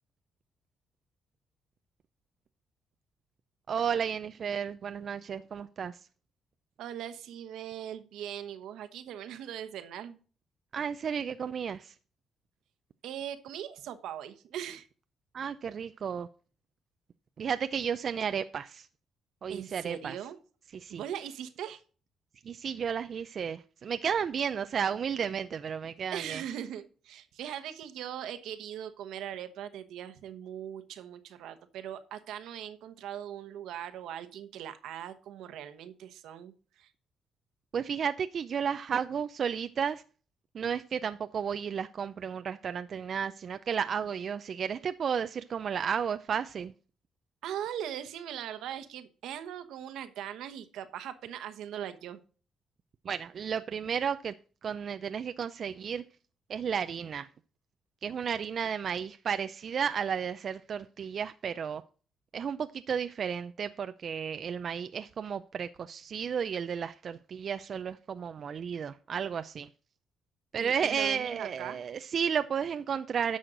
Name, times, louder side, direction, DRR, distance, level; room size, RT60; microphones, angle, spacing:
voice 1, 3.7-6.0 10.7-11.9 15.3-16.3 17.4-18.9 19.4-20.1 20.7-21.0 22.4-26.4 37.7-40.0 40.5-46.7 53.0-54.3 54.6-56.0 56.5-57.3 58.0-61.8 62.3-69.7 70.5-73.4, right 7 dB, 55° right, 0.4 m, -33 dB
voice 2, 6.8-10.2 13.0-14.9 19.5-20.4 20.9-21.8 26.1-36.9 47.4-52.2 70.6-71.8, right 10 dB, 85° right, 1.1 m, -40 dB
10.0 x 6.4 x 3.9 m
cardioid pair, 90°, 0 cm